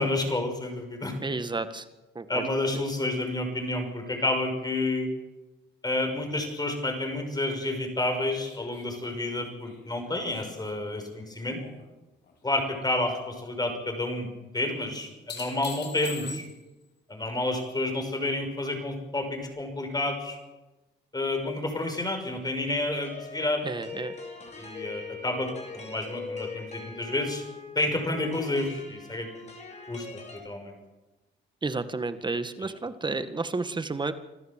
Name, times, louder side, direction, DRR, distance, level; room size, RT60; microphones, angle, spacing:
voice 1, 0.0-1.1 2.3-5.1 5.8-11.6 12.4-14.3 14.5-16.4 17.1-20.4 21.1-23.6 24.6-27.4 27.7-29.3 29.9-30.1 30.3-30.7, left 2 dB, 20° left, 4 dB, 6.0 m, -30 dB
voice 2, 1.2-1.8 2.1-2.4 16.2-16.4 23.6-24.1 31.6-34.1, right 3 dB, 25° right, 11 dB, 1.7 m, -31 dB
sound 1, 8.4-11.9 12.2-12.8 14.9-16.8 19.4-19.5, left 6 dB, 60° left, 4.5 m, -45 dB
sound 2, 23.0-30.4, left 4 dB, 35° left, 5.4 m, -42 dB
26.5 x 14.0 x 7.6 m, 1.1 s
cardioid pair, 90°, 20 cm